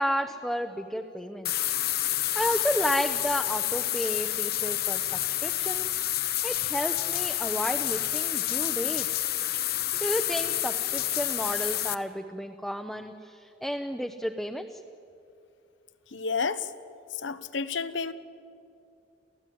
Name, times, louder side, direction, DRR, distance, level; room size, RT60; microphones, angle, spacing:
voice 1, 0.0-1.5 2.3-6.0 6.4-9.1 10.0-14.8, equal, ahead, 4 dB, 0.8 m, -32 dB
sound 1, 1.4-11.9, left 13 dB, 55° left, 0.8 m, -29 dB
voice 2, 16.1-16.7 17.2-18.1, left 5 dB, 80° left, 13 dB, 1.0 m, -30 dB
29.0 x 15.5 x 9.3 m, 2.6 s
head